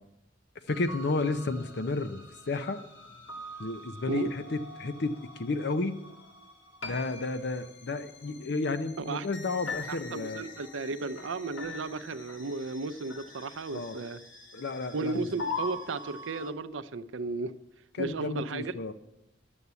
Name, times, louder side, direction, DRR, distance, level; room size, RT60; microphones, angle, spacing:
sound 1, 0.7-16.5, left 2 dB, 85° left, 2.1 m, -43 dB
voice 1, 0.7-2.2 2.5-2.8 3.6-6.0 6.8-10.4 13.7-14.0 14.5-15.3 17.9-18.9, left 3 dB, 60° left, 0.6 m, -32 dB
voice 2, 9.9-14.2 14.9-17.5 18.0-18.7, right 3 dB, 85° right, 0.6 m, -34 dB
11.0 x 7.2 x 8.2 m
head